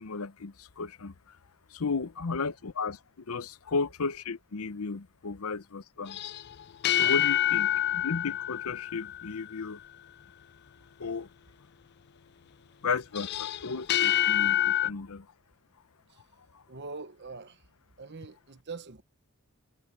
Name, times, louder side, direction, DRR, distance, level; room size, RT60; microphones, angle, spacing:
voice 1, 0.0-1.4 1.7-6.2 7.0-9.8 11.0-11.3 12.8-15.3 16.5-16.6, left 4 dB, 75° left, 0.8 m, -34 dB
sound 1, 6.1-9.6 13.1-14.9, left 12 dB, 50° left, 0.4 m, -27 dB
voice 2, 16.7-17.6 18.0-19.0, right 4 dB, 50° right, 1.1 m, -43 dB
head